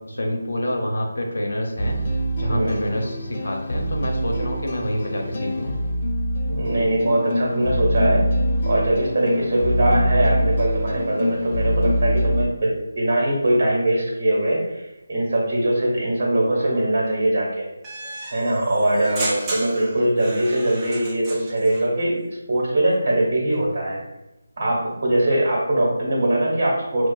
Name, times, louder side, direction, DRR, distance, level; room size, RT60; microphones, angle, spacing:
voice 1, 0.0-2.0 2.3-5.7, equal, 65° left, 1 dB, 0.9 m, -27 dB
sound 1, 1.8-12.5, equal, 40° left, 0.5 m, -24 dB
voice 2, 2.5-2.9 6.4-8.2 8.6-14.8 15.1-17.7 18.3-24.0 24.6-27.1, right 1 dB, 45° right, -4 dB, 1.1 m, -21 dB
sound 2, 17.8-21.9, right 1 dB, 15° right, 0.6 m, -33 dB
5.7 x 2.3 x 2.3 m, 0.94 s
figure-of-eight pair, 160°, 0 cm